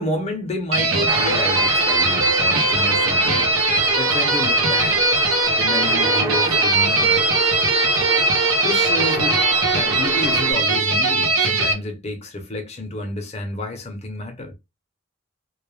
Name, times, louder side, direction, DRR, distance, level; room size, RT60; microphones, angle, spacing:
voice 1, 0.0-3.7 4.0-5.1 5.6-7.2 8.6-9.4 9.7-14.5, left 1 dB, 30° left, 0.6 m, -30 dB
sound 1, 0.7-11.7, right 3 dB, 80° right, 0.7 m, -19 dB
sound 2, 1.1-10.5, right 2 dB, 15° right, 0.5 m, -29 dB
2.2 x 2.1 x 3.1 m
head